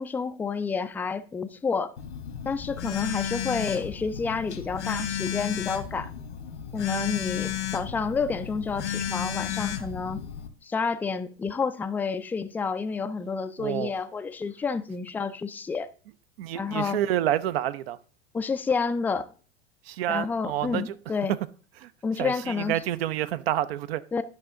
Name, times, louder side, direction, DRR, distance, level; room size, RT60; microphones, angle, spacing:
voice 1, 0.0-1.9 2.5-6.1 6.7-10.2 10.6-15.9 16.5-17.0 18.3-19.3 20.1-21.3 22.0-22.8 24.1-24.2, left 5 dB, 5° left, 0.3 m, -29 dB
Telephone, 2.0-10.5, left 9 dB, 80° left, 1.3 m, -33 dB
voice 2, 13.6-13.9 16.4-18.0 19.8-20.9 21.2-21.4 21.8-24.0, right 12 dB, 60° right, 0.6 m, -28 dB
10.5 x 5.6 x 3.6 m
hypercardioid pair, 90°, 34 cm